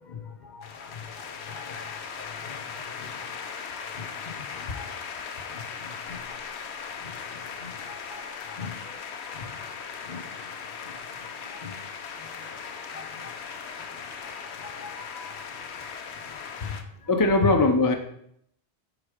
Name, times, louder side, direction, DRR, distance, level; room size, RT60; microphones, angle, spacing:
voice 1, 0.0-2.0 2.5-3.2 4.0-4.9 5.5-5.6 6.3-6.4 7.6-8.2 8.6-9.0 9.2-9.5 10.1-10.2 10.8-11.0 11.5-11.8 12.9-13.3 14.2-14.3 14.8-15.4 16.3-16.4, left 5 dB, 45° left, 5 dB, 0.9 m, -42 dB
sound 1, 0.6-16.8, left 6 dB, 80° left, 1.0 m, -38 dB
voice 2, 17.1-17.9, left 2 dB, 20° left, 4 dB, 0.6 m, -20 dB
9.8 x 4.2 x 5.0 m, 0.70 s
omnidirectional pair, 1.1 m